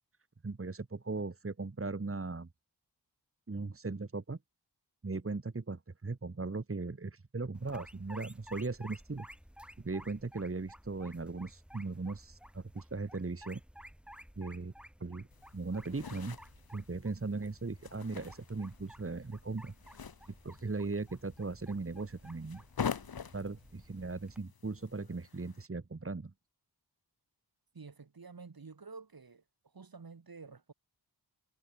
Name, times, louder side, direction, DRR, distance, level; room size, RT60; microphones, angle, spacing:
voice 1, 0.4-2.5 3.5-4.4 5.0-9.3 9.8-13.6 14.4-14.7 15.0-15.3 15.5-16.4 16.7-19.7 20.4-22.6 23.3-26.3, right 3 dB, 35° right, 2.2 m, -38 dB
sound 1, 7.5-24.4, equal, 5° right, 1.9 m, -54 dB
sound 2, 15.3-25.7, left 7 dB, 60° left, 1.3 m, -45 dB
voice 2, 27.7-29.4 29.7-30.7, right 4 dB, 60° right, 4.8 m, -50 dB
wide cardioid pair, 80°, 40 cm